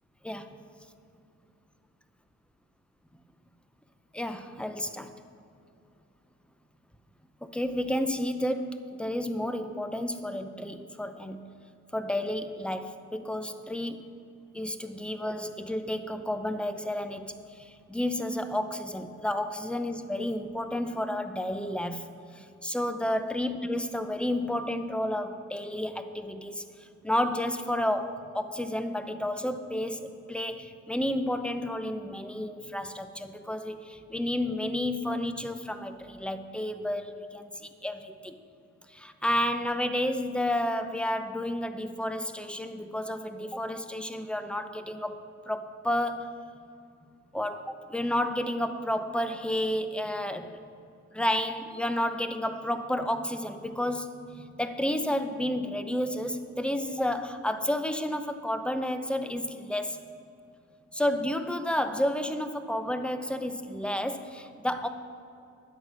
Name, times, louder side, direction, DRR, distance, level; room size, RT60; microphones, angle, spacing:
voice 1, 4.1-5.1 7.4-11.4 11.9-14.1 14.5-22.0 22.4-26.7 27.0-38.3 38.9-46.3 47.3-50.5 51.1-60.1 60.9-64.9, left 1 dB, 5° left, 9 dB, 0.7 m, -31 dB
10.5 x 8.1 x 6.1 m, 2.6 s
cardioid pair, 90°, 30 cm